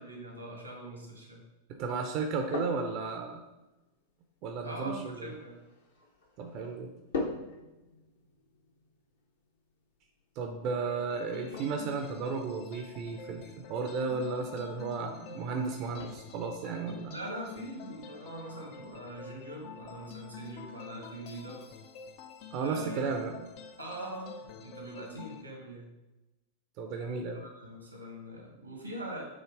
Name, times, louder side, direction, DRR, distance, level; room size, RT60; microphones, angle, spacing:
voice 1, 0.0-1.5 4.6-5.6 17.1-21.6 22.5-23.0 23.8-25.9 27.3-29.2, right 1 dB, 85° right, 0 dB, 1.7 m, -42 dB
voice 2, 1.7-3.4 4.4-5.3 6.4-6.9 10.4-17.2 22.5-23.5 26.8-27.4, right 4 dB, 40° right, 4 dB, 0.6 m, -34 dB
sound 1, 2.1-20.2, left 3 dB, 65° left, 1.2 m, -46 dB
sound 2, 10.6-25.4, left 7 dB, 45° left, 0.6 m, -48 dB
7.2 x 3.2 x 4.7 m, 1.0 s
figure-of-eight pair, 90°, 0 cm